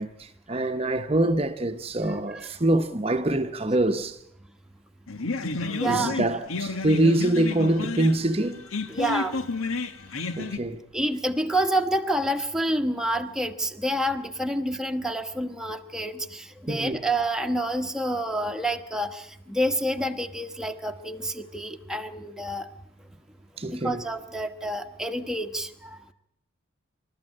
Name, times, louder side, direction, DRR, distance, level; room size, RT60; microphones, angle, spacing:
voice 1, 0.0-4.2 5.8-8.6 10.4-10.8 16.7-17.0 23.6-24.0, right 1 dB, 30° right, 0.9 m, -25 dB
voice 2, 2.1-2.4 5.7-6.2 8.9-9.3 10.9-22.7 23.6-26.0, right 1 dB, 5° right, 1.1 m, -28 dB
sound 1, 5.1-10.6, left 3 dB, 85° left, 1.6 m, -31 dB
27.0 x 13.5 x 10.0 m
head